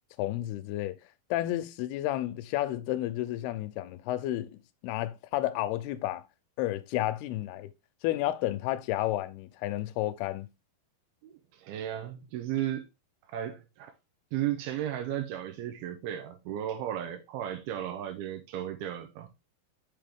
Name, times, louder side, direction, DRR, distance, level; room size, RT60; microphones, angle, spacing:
voice 1, 0.2-1.0 1.3-6.2 6.6-7.7 8.0-10.5, left 14 dB, 85° left, 2.5 m, -31 dB
voice 2, 11.2-12.9 13.3-13.9 14.3-19.3, right 11 dB, 80° right, 2.5 m, -35 dB
6.0 x 5.1 x 3.4 m
omnidirectional pair, 4.7 m